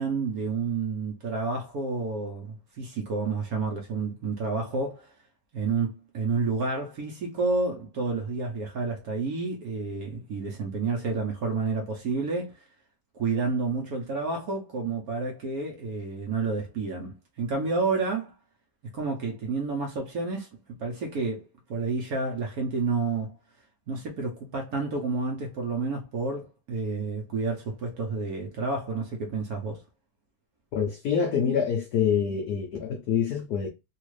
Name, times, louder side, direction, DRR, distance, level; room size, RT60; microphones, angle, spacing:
voice 1, 0.0-5.1 5.5-12.6 13.2-18.3 18.9-20.5 20.8-23.4 23.9-29.8, right 4 dB, 60° right, 1.0 m, -30 dB
voice 2, 30.7-33.7, left 7 dB, 85° left, 0.8 m, -26 dB
3.4 x 2.4 x 3.1 m
omnidirectional pair, 2.3 m